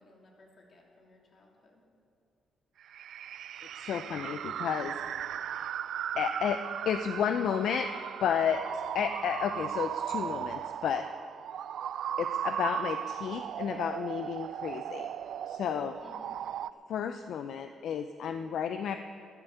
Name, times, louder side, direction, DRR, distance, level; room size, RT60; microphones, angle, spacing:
voice 1, 0.0-1.8 16.0-16.4, left 2 dB, 50° left, -1 dB, 3.0 m, -58 dB
sound 1, 2.9-16.7, right 10 dB, 70° right, 0.3 m, -37 dB
voice 2, 3.8-4.9 6.1-7.9 8.2-11.1 12.2-15.1 15.5-16.0 16.9-19.0, left 8 dB, 70° left, 8 dB, 0.5 m, -32 dB
12.5 x 11.0 x 6.8 m, 2.5 s
cardioid pair, 90°, 0 cm